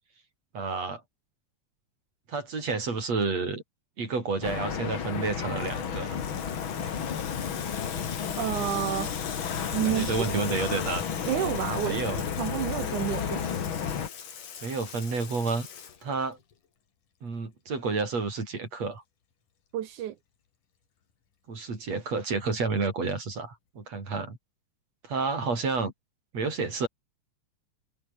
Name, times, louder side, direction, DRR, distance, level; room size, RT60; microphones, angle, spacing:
voice 1, 0.5-1.0 2.3-3.6 4.0-6.2 9.9-11.0 11.9-12.2 14.6-15.7 16.0-16.4 17.2-19.0 21.5-24.4 25.0-25.9 26.3-26.9, right 4 dB, 55° right, 6.8 m, -30 dB
sound 1, 4.4-14.1, left 7 dB, 45° left, 2.3 m, -32 dB
Water tap faucet / Sink (filling or washing), 5.1-16.5, left 8 dB, 85° left, 4.4 m, -42 dB
voice 2, 8.4-9.1 9.7-10.4 11.3-12.0 12.4-13.5 19.7-20.2, right 12 dB, 80° right, 2.9 m, -30 dB
omnidirectional pair, 3.5 m